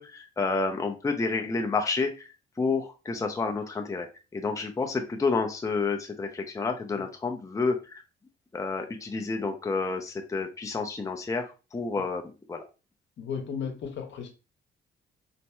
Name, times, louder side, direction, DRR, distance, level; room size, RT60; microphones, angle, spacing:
voice 1, 0.0-2.3 2.6-4.1 4.3-8.0 8.5-12.2 12.5-12.7, left 4 dB, 15° left, 0.5 m, -29 dB
voice 2, 13.2-14.3, left 6 dB, 65° left, 0.9 m, -35 dB
4.1 x 2.7 x 2.2 m
cardioid pair, 90°, 20 cm